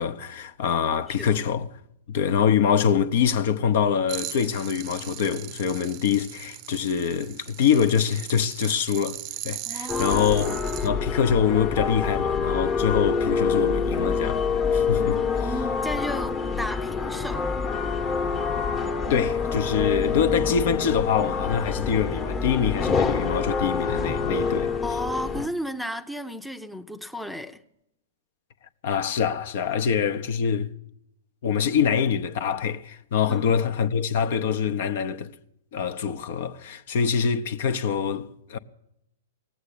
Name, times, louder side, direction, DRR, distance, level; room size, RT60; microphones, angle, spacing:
voice 1, 0.0-1.7 2.1-9.2 9.4-15.2 19.1-24.7 28.8-30.7 31.4-35.3 35.7-38.6, left 7 dB, 60° left, 0.8 m, -24 dB
voice 2, 0.9-1.4 9.7-10.4 15.3-17.5 24.8-27.6 33.3-33.6, equal, ahead, 0.7 m, -34 dB
sound 1, 4.1-10.9, right 14 dB, 40° right, 0.6 m, -38 dB
sound 2, 9.9-25.5, left 5 dB, 25° left, 1.1 m, -26 dB
18.0 x 8.0 x 10.0 m
hypercardioid pair, 120°, 0 cm